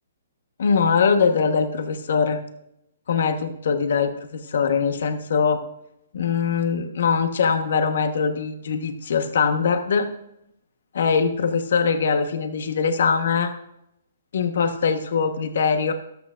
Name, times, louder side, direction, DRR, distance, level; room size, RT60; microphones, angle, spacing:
voice 1, 0.6-2.4 3.1-5.6 6.1-10.1 10.9-13.5 14.3-15.9, left 5 dB, 65° left, 8 dB, 1.1 m, -22 dB
14.0 x 12.5 x 2.5 m, 0.80 s
hypercardioid pair, 135°, 0 cm